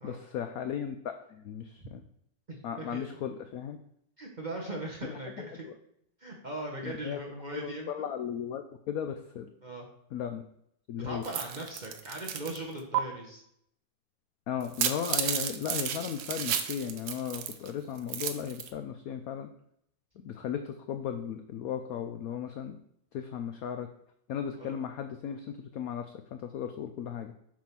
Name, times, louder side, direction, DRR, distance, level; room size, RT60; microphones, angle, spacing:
voice 1, 0.0-1.0 1.3-2.0 2.6-3.8 5.7-5.8 6.8-7.2 7.5-9.5 10.1-10.4 10.9-11.2 14.5-19.5 20.2-22.8 23.1-23.9 24.3-27.3, left 8 dB, 80° left, 7 dB, 0.8 m, -36 dB
voice 2, 2.5-3.2 4.2-5.7 6.2-8.1 9.6-9.9 10.9-13.4 24.5-24.8, right 1 dB, 35° right, -1 dB, 0.8 m, -39 dB
sound 1, 11.2-12.6 12.9-13.0 14.6-17.7 18.0-18.7, right 9 dB, 65° right, 1.1 m, -32 dB
7.4 x 3.7 x 5.8 m, 0.72 s
omnidirectional pair, 2.1 m